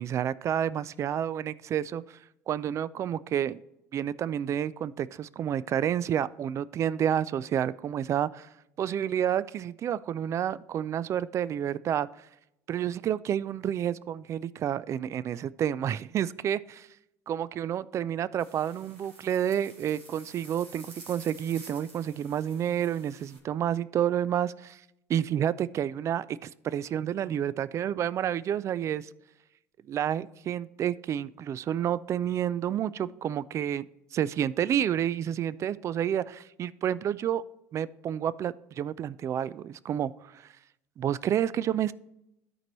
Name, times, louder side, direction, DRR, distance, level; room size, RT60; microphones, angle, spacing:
voice 1, 0.0-2.2 2.5-3.6 3.9-8.5 8.8-12.3 12.7-16.9 17.3-24.8 25.1-29.1 29.9-33.9 34.1-36.2 36.6-37.4 37.7-40.5 41.0-41.9, right 10 dB, 45° right, 18 dB, 0.3 m, -29 dB
sound 1, 18.4-23.4, right 3 dB, 90° right, 2.0 m, -51 dB
13.5 x 4.6 x 3.0 m, 0.86 s
supercardioid pair, 80°, 7 cm